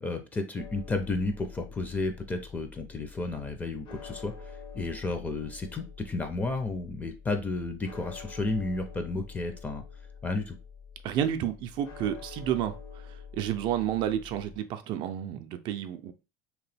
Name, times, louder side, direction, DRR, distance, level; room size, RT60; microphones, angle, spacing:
voice 1, 0.0-9.8 10.2-10.6, left 3 dB, 15° left, 0.5 m, -32 dB
sound 1, 0.6-14.6, left 6 dB, 55° left, 0.7 m, -46 dB
voice 2, 11.0-12.8 13.3-16.1, right 10 dB, 55° right, 0.4 m, -30 dB
2.9 x 2.2 x 3.3 m
supercardioid pair, 115°, 10 cm